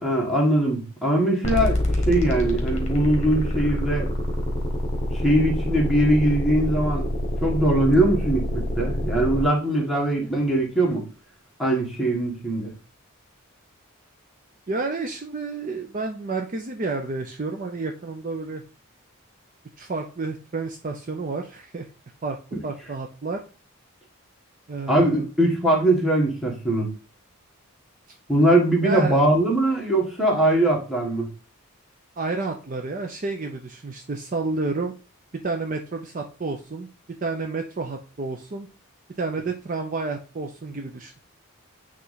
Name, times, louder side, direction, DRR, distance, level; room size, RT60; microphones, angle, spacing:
voice 1, 0.0-4.1 5.1-7.1 7.4-11.0 11.6-12.7 24.9-26.9 28.3-31.3, right 1 dB, ahead, -2 dB, 1.5 m, -21 dB
sound 1, 1.4-9.5, left 1 dB, 30° left, 1.3 m, -26 dB
voice 2, 14.7-18.6 19.8-21.9 22.2-22.4 22.6-23.4 24.7-25.3 28.8-29.2 32.2-34.9 35.4-36.9 37.2-38.7 39.2-41.1, right 3 dB, 35° right, 4 dB, 0.5 m, -30 dB
8.1 x 3.1 x 4.0 m, 0.36 s
head